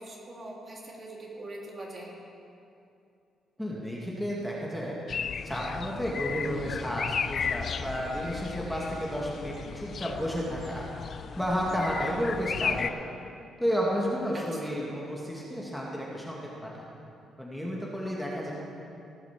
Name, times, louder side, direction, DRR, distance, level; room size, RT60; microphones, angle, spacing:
voice 1, 0.0-2.1 14.3-14.8, right 1 dB, 35° right, -2 dB, 2.8 m, -42 dB
voice 2, 3.6-5.0 5.4-10.8 11.4-13.1 13.6-16.8 17.4-18.5, equal, ahead, -4 dB, 2.2 m, -32 dB
sound 1, 5.1-12.9, left 6 dB, 50° left, 0.4 m, -35 dB
17.0 x 5.9 x 7.4 m, 2.6 s
cardioid pair, 90°, 0 cm